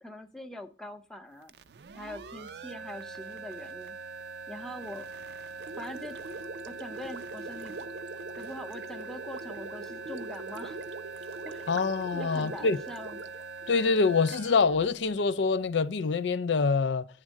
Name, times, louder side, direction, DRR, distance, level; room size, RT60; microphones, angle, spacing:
voice 1, 0.0-1.5 1.9-3.9 4.5-5.1 5.8-6.2 6.7-7.7 8.4-10.8 11.4-11.7 12.1-13.2, left 1 dB, 5° left, 0.6 m, -43 dB
sound 1, 1.4-16.0, right 4 dB, 65° right, 0.4 m, -43 dB
Gurgling, 5.6-14.0, right 2 dB, 85° right, 0.8 m, -43 dB
voice 2, 11.7-12.8 13.7-17.1, left 4 dB, 75° left, 0.4 m, -25 dB
9.8 x 3.6 x 6.3 m
head